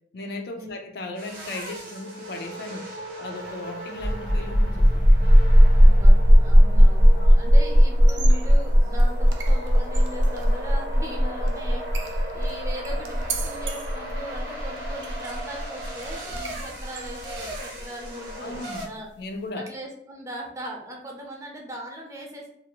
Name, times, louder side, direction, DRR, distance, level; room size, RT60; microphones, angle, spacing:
voice 1, 0.1-2.9 3.2-5.2 7.0-7.4 18.4-18.9 19.2-19.7, left 2 dB, 60° left, 4 dB, 0.4 m, -36 dB
Monza track side, 1.2-18.9, right 1 dB, 50° right, 0.7 m, -38 dB
sound 1, 3.9-17.3, equal, 85° left, 1.0 m, -17 dB
voice 2, 5.8-18.5 18.8-19.1 19.5-22.5, equal, 15° right, 0 dB, 0.5 m, -39 dB
sound 2, 8.0-17.8, right 5 dB, 85° right, 0.5 m, -40 dB
2.6 x 2.5 x 2.8 m, 0.73 s
head